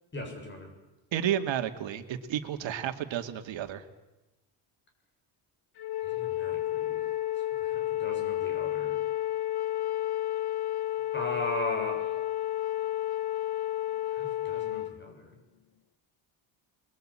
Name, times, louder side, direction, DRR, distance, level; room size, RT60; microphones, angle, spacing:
voice 1, 0.1-0.7 6.0-7.0 7.6-9.0 11.1-12.2 12.6-12.7 14.1-15.3, left 1 dB, 25° left, 3 dB, 7.5 m, -38 dB
voice 2, 1.1-3.8, right 10 dB, 70° right, 7 dB, 2.4 m, -31 dB
Wind instrument woodwind instrument, 5.8-14.9, left 14 dB, 55° left, 1.5 m, -31 dB
28.5 x 22.0 x 9.0 m, 1.0 s
cardioid pair, 130°, 47 cm